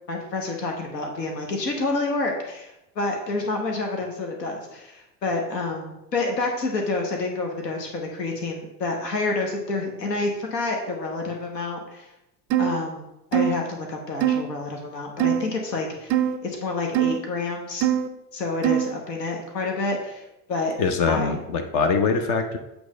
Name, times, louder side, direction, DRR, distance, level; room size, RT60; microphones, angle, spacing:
voice 1, 0.1-12.1 12.6-17.9 18.3-20.8 21.1-21.3, left 3 dB, 75° left, 2 dB, 1.2 m, -28 dB
sound 1, 12.5-12.8 13.3-13.6 14.2-14.4 15.2-15.5 16.1-16.4 16.9-17.2 17.8-18.1 18.6-18.9, right 10 dB, 30° right, 0.3 m, -22 dB
voice 2, 20.8-22.6, left 4 dB, 50° left, 6 dB, 0.9 m, -23 dB
8.1 x 3.4 x 5.1 m, 0.89 s
figure-of-eight pair, 70°, 49 cm